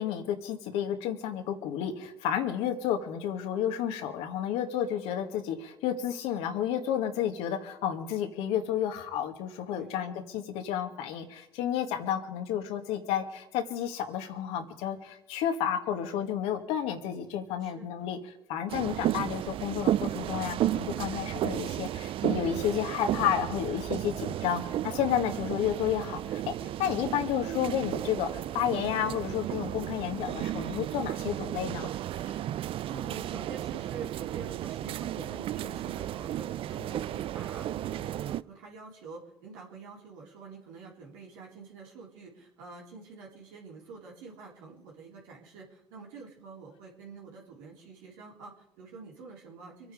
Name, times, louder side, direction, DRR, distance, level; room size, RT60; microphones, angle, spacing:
voice 1, 0.0-18.2 18.5-26.4 26.8-31.9 32.3-32.4, left 9 dB, 80° left, 5 dB, 1.9 m, -31 dB
voice 2, 17.6-18.1 18.6-18.8 32.8-49.9, right 4 dB, 85° right, -2 dB, 3.9 m, -47 dB
sound 1, 18.7-38.4, right 12 dB, 60° right, 0.5 m, -33 dB
25.0 x 9.4 x 5.1 m, 0.84 s
hypercardioid pair, 60°, 10 cm